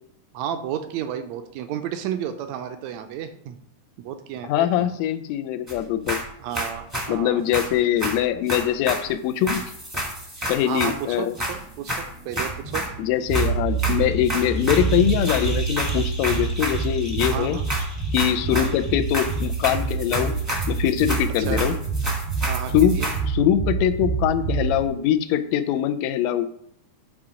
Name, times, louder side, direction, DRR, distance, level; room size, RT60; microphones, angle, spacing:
voice 1, 0.3-3.6 4.0-4.9 6.4-7.4 10.7-10.9 11.2-12.8 17.3-17.7 18.5-18.7 21.4-21.6 22.5-23.1, right 9 dB, 80° right, 8 dB, 1.6 m, -32 dB
voice 2, 4.4-6.2 7.1-9.6 10.5-11.3 13.0-17.6 18.1-20.4 20.7-21.8 22.7-26.5, left 11 dB, 80° left, 10 dB, 1.7 m, -23 dB
sound 1, 5.7-5.8 6.1-7.1 7.5-9.1 9.5-11.0 11.3-13.0 13.3-13.5 13.8-23.2, right 1 dB, 10° right, 0.7 m, -30 dB
sound 2, 12.2-24.9, right 5 dB, 55° left, 0.8 m, -27 dB
8.7 x 3.7 x 5.0 m, 0.69 s
omnidirectional pair, 3.6 m